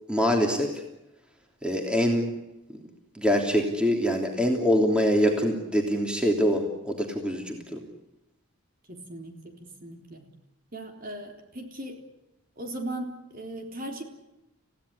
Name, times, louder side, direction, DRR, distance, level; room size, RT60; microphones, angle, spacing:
voice 1, 0.1-0.7 1.6-2.3 3.1-7.8, equal, 5° right, 2 dB, 3.2 m, -24 dB
voice 2, 8.9-10.2 10.7-12.0 12.6-14.0, right 1 dB, 40° right, 3 dB, 3.8 m, -38 dB
29.0 x 17.0 x 9.8 m, 0.96 s
head